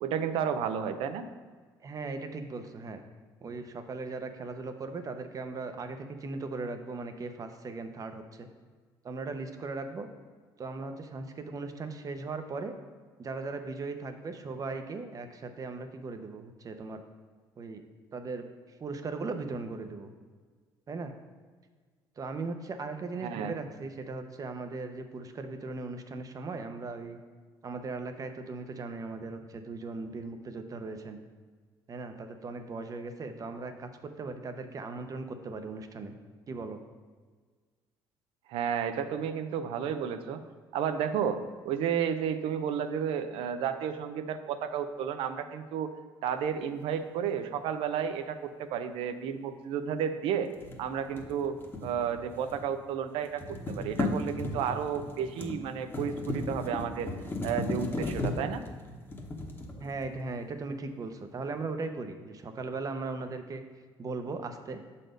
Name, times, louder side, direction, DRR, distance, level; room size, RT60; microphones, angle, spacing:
voice 1, 0.0-1.3 23.2-23.5 38.5-40.4 40.7-45.9 46.2-50.5 50.8-51.6 51.8-57.1 57.4-58.6, right 8 dB, 80° right, 9 dB, 0.6 m, -32 dB
voice 2, 1.8-3.0 3.4-8.5 9.0-10.1 10.6-12.7 13.2-17.0 17.6-17.8 18.1-20.1 20.9-21.1 22.2-27.2 27.6-31.2 31.9-36.2 36.5-36.8 59.8-63.6 64.0-64.8, right 3 dB, 40° right, 8 dB, 0.8 m, -38 dB
sound 1, 50.5-52.8 53.0-60.3, left 2 dB, 25° left, 1.1 m, -36 dB
6.4 x 4.2 x 5.1 m, 1.5 s
supercardioid pair, 80°, 9 cm